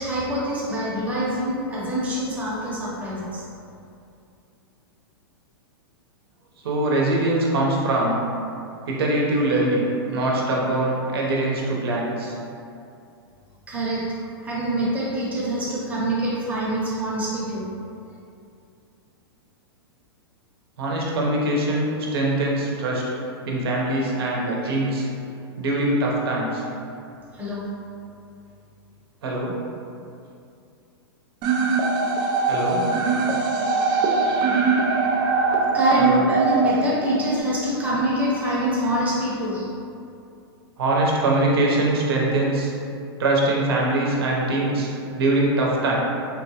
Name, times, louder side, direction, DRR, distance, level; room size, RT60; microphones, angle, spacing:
voice 1, 0.0-3.4 13.7-17.7 27.3-27.6 35.7-39.7, right 1 dB, 10° right, -7 dB, 0.9 m, -25 dB
voice 2, 6.6-8.2 8.9-9.9 10.1-12.3 20.8-23.0 23.5-25.1 25.6-26.6 29.2-29.5 32.5-32.9 36.0-36.2 40.8-42.7 43.2-46.0, right 2 dB, 70° right, -3 dB, 0.8 m, -22 dB
sound 1, 31.4-37.4, right 4 dB, 30° right, 0.4 m, -22 dB
3.7 x 2.2 x 2.9 m, 2.5 s
hypercardioid pair, 120°, 13 cm